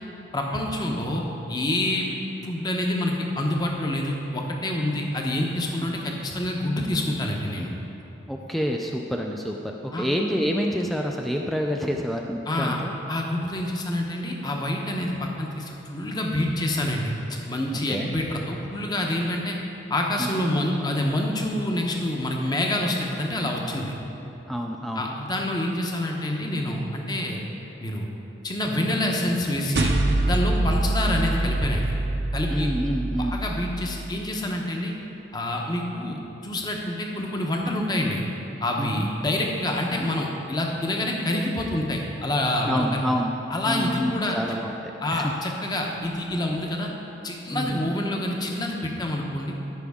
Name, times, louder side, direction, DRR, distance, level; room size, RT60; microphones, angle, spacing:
voice 1, 0.3-1.2 1.5-2.1 2.4-7.7 9.9-10.1 12.5-12.8 13.1-17.1 17.5-19.6 19.9-23.9 24.9-27.4 27.8-28.1 28.4-29.9 30.3-31.9 32.3-32.7 33.3-34.9 35.3-38.2 38.6-43.0 43.5-44.4 45.0-46.9 47.2-49.5, left 1 dB, 20° left, 0 dB, 0.8 m, -27 dB
voice 2, 8.3-12.9 17.9-18.1 20.2-20.4 24.5-25.1 32.5-33.4 38.8-39.1 42.7-43.3 43.6-44.7 45.1-45.3 47.5-48.0, equal, ahead, 1 dB, 0.3 m, -28 dB
sound 1, 29.7-34.4, right 2 dB, 60° right, 0.7 m, -25 dB
13.5 x 5.9 x 3.6 m, 3.0 s
head